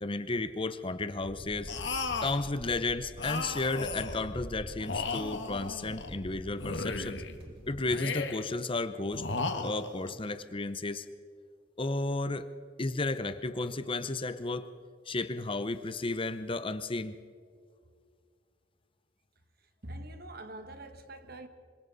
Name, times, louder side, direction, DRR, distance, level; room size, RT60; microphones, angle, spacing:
voice 1, 0.0-1.7 2.2-7.2 7.7-9.3 9.6-11.1 11.8-12.5 12.8-14.7 15.1-17.2, left 2 dB, 30° left, 0.8 m, -33 dB
sound 1, 1.2-7.8, equal, 35° right, 4.3 m, -46 dB
sound 2, 1.7-2.5 3.2-4.3 4.8-6.2 6.6-7.4 7.9-8.6 9.1-10.1, left 4 dB, 85° left, 1.6 m, -35 dB
voice 2, 19.8-21.5, right 1 dB, 60° right, 1.7 m, -44 dB
26.0 x 25.0 x 4.1 m
head